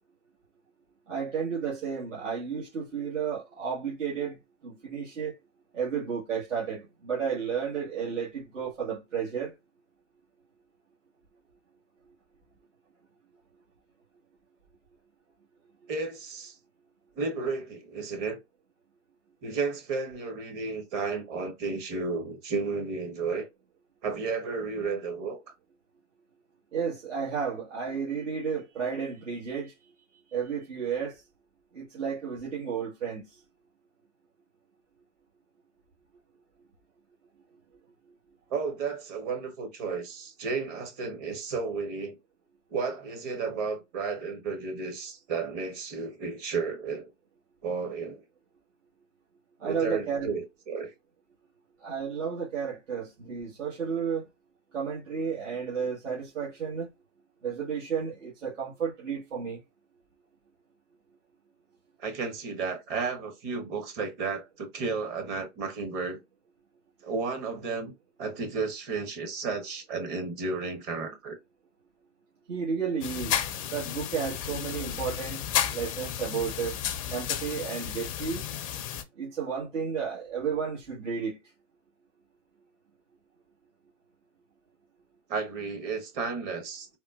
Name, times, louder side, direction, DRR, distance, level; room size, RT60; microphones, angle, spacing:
voice 1, 1.1-5.3 5.7-9.5 26.7-29.7 30.3-31.2 31.7-33.4 49.6-50.3 51.8-54.3 54.7-56.9 57.4-59.6 72.5-75.4 75.7-76.7 77.1-78.4 79.1-81.4, right 6 dB, 85° right, 1.4 m, -32 dB
voice 2, 15.9-16.6 17.2-18.4 19.4-23.5 24.0-25.4 38.5-42.2 42.7-47.1 47.6-48.2 49.6-50.9 62.0-66.2 67.0-67.9 68.2-71.4 85.3-87.0, right 4 dB, 30° right, 0.7 m, -33 dB
sound 1, 73.0-79.0, left 10 dB, 30° left, 0.4 m, -32 dB
3.6 x 2.1 x 2.3 m
hypercardioid pair, 125°, 36 cm